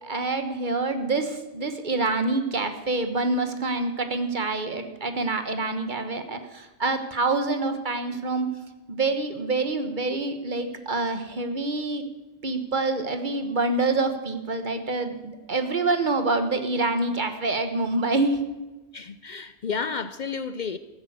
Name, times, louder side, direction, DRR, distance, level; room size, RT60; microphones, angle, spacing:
voice 1, 0.0-8.5 8.9-12.0 12.4-18.4, right 3 dB, 50° right, 1.4 m, -26 dB
voice 2, 18.9-20.8, left 5 dB, 55° left, 0.7 m, -31 dB
14.0 x 11.0 x 8.0 m
omnidirectional pair, 1.1 m